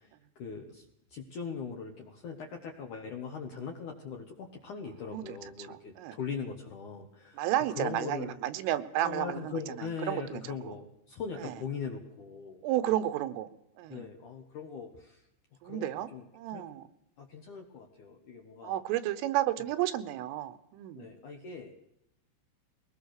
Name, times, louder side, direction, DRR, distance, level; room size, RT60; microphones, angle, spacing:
voice 1, 0.4-0.8 1.1-7.4 7.8-8.4 9.0-12.6 13.9-15.2 15.6-16.2 16.5-16.7 17.2-18.8 21.0-21.7, left 6 dB, 60° left, 2 dB, 2.2 m, -40 dB
voice 2, 5.7-6.2 7.4-10.8 11.4-11.5 12.6-13.5 13.8-14.1 15.6-16.1 16.3-16.9 18.6-21.1, right 13 dB, 85° right, 11 dB, 3.6 m, -32 dB
22.0 x 18.5 x 6.6 m, 0.83 s
omnidirectional pair, 5.8 m